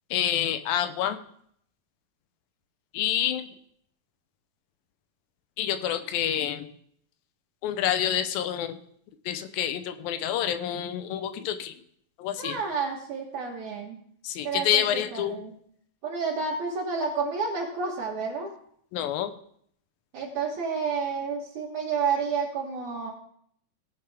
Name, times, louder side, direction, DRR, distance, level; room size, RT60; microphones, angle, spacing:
voice 1, 0.1-1.2 2.9-3.5 5.6-6.7 7.6-8.8 9.3-11.7 12.2-12.6 14.2-15.4 18.9-19.3, left 10 dB, 80° left, 9 dB, 2.5 m, -28 dB
voice 2, 12.4-14.0 14.4-15.5 16.0-18.5 20.1-23.1, right 5 dB, 60° right, -3 dB, 2.6 m, -30 dB
18.5 x 6.8 x 3.5 m, 0.66 s
omnidirectional pair, 4.2 m